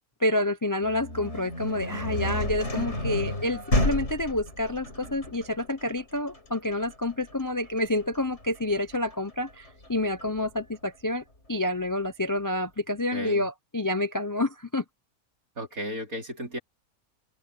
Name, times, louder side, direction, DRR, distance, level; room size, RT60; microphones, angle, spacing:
voice 1, 0.2-14.8, left 1 dB, 25° left, 0.5 m, -28 dB
sound 1, 0.8-10.6, left 1 dB, 45° left, 6.8 m, -32 dB
voice 2, 13.1-13.5 15.6-16.6, equal, 65° right, 5.1 m, -34 dB
open air
omnidirectional pair, 1.6 m